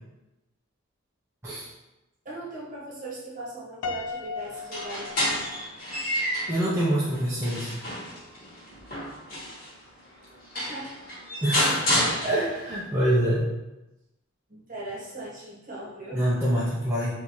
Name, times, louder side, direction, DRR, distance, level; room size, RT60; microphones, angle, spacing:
voice 1, 2.2-5.4 10.5-10.9 14.5-16.2, right 2 dB, 40° right, -5 dB, 1.0 m, -39 dB
Piano, 3.8-6.1, left 4 dB, 65° left, 0.4 m, -36 dB
sound 1, 4.6-6.6 7.1-9.7 10.2-10.3 10.5-12.8, left 1 dB, 40° left, 1.4 m, -29 dB
voice 2, 6.5-7.7 11.4-11.8 12.2-13.4 16.1-17.2, right 1 dB, 10° right, -9 dB, 0.4 m, -25 dB
3.7 x 2.7 x 3.0 m, 0.98 s
head